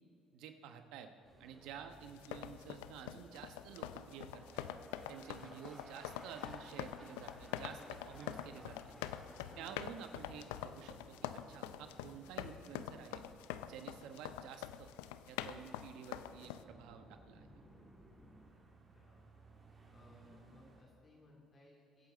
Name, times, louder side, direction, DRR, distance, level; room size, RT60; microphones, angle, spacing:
voice 1, 0.3-1.1 1.4-4.6 5.1-8.9 9.6-13.2 13.6-14.9 15.3-17.5, right 8 dB, 75° right, 7 dB, 1.0 m, -51 dB
sound 1, 1.2-20.8, right 3 dB, 40° right, 2.8 m, -66 dB
sound 2, 1.4-18.5, equal, ahead, 3.1 m, -60 dB
sound 3, 2.1-16.6, left 11 dB, 85° left, 0.4 m, -46 dB
voice 2, 18.9-19.3 19.9-22.1, left 2 dB, 45° left, -2 dB, 2.4 m, -63 dB
23.5 x 8.1 x 4.1 m, 2.6 s
supercardioid pair, 65°, 0 cm